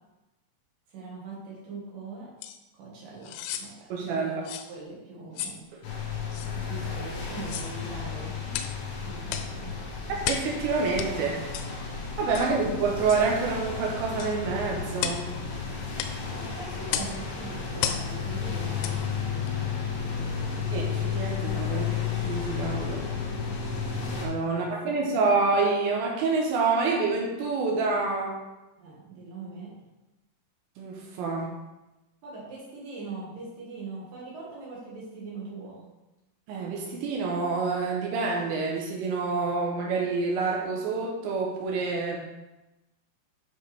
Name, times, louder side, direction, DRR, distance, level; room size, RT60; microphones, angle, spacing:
voice 1, 0.9-2.3 2.7-3.3 3.6-3.7 4.0-5.7 6.5-9.8 12.4-12.5 15.9-20.3 24.4-25.0 28.8-29.7 32.2-35.8, right 3 dB, 60° right, -5 dB, 2.5 m, -42 dB
sound 1, 2.4-2.6 3.2-3.7 4.5-4.7 5.4-5.6 6.3-6.5 7.4-7.7 8.5-8.8 9.3-9.5 10.2-10.5 11.0-11.1 11.5-11.7 12.3-12.5 13.1-13.3 14.2-14.4 15.0-15.3 16.0-16.2 16.9-17.2 17.8-18.1 18.8-19.0 19.5-19.6, left 10 dB, 90° left, 3.4 m, -33 dB
voice 2, 3.9-4.4 10.3-11.4 12.2-15.3 20.7-23.0 24.2-28.4 30.8-31.5 36.5-42.2, right 4 dB, 75° right, -1 dB, 2.8 m, -27 dB
sound 2, 5.8-24.3, left 6 dB, 70° left, 3.9 m, -33 dB
10.5 x 4.5 x 3.4 m, 1.0 s
omnidirectional pair, 6.0 m